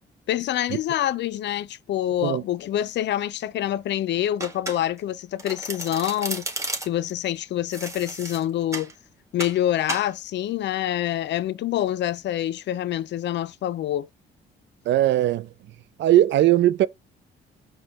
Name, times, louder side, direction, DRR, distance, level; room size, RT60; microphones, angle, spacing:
voice 1, 0.3-6.4 6.8-8.9 9.3-14.1, left 12 dB, 60° left, 0.5 m, -26 dB
Domestic sounds home sounds, 4.4-5.1 5.4-7.1 7.7-8.9 9.4-9.6 9.9-10.1, right 2 dB, 15° right, 1.7 m, -33 dB
voice 2, 14.9-15.5 16.0-16.9, right 13 dB, 65° right, 0.4 m, -19 dB
5.0 x 2.3 x 3.4 m
cardioid pair, 90°, 20 cm